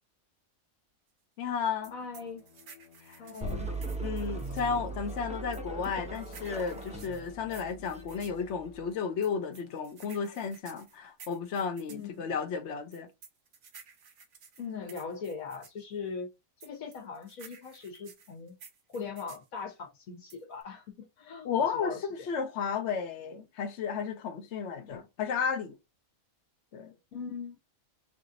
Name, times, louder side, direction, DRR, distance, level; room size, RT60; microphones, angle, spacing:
voice 1, 1.4-1.9 3.1-3.2 4.0-13.1 21.4-25.7 26.7-26.9, left 6 dB, 60° left, 1.0 m, -33 dB
Bowed string instrument, 1.6-10.1, left 10 dB, 30° left, 0.9 m, -54 dB
sound 1, 1.8-4.7 5.5-8.4 9.2-12.1 12.9-15.8 16.6-19.5 20.3-20.6, right 6 dB, 60° right, 1.2 m, -53 dB
voice 2, 1.9-2.4 3.2-3.7 7.7-7.8 11.9-12.3 14.6-16.3 16.6-18.5 18.9-22.3 27.1-27.6, left 5 dB, 75° left, 1.6 m, -40 dB
sound 2, 3.4-8.9, right 2 dB, 10° right, 0.5 m, -39 dB
5.0 x 2.5 x 2.7 m
omnidirectional pair, 1.5 m